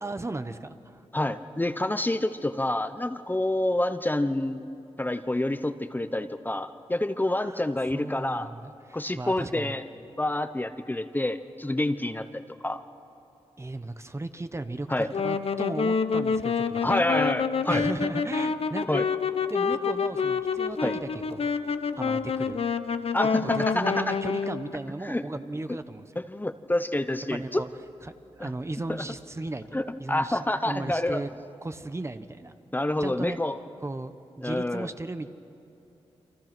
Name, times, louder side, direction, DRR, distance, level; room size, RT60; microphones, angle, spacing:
voice 1, 0.0-1.1 7.4-9.8 13.6-17.2 17.7-19.0 19.5-21.5 22.0-22.6 23.4-26.2 27.3-27.7 28.0-30.4 30.6-31.3 31.6-32.6 33.0-33.4 33.8-35.3, right 2 dB, 25° right, 9 dB, 1.1 m, -36 dB
voice 2, 1.1-4.6 5.0-8.5 8.9-9.8 10.2-12.8 14.9-15.1 16.8-17.8 18.9-19.0 20.8-20.9 23.1-24.0 25.0-25.2 26.3-27.6 28.4-28.5 28.9-29.0 29.7-31.2 32.7-33.5 34.4-34.9, left 1 dB, 15° left, 10 dB, 0.9 m, -28 dB
Wind instrument woodwind instrument, 15.0-24.7, left 5 dB, 60° left, 0.9 m, -27 dB
29.0 x 24.5 x 6.1 m, 2.8 s
cardioid pair, 65°, 11 cm